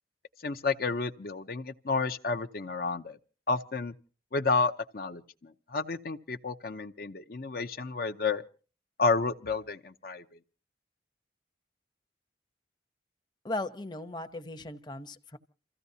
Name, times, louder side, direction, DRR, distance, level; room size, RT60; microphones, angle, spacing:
voice 1, 0.4-3.2 3.5-3.9 4.3-5.2 5.7-8.4 9.0-10.2, left 4 dB, 55° left, 0.7 m, -30 dB
voice 2, 13.4-15.4, left 2 dB, 25° left, 0.9 m, -37 dB
29.0 x 15.0 x 2.8 m
head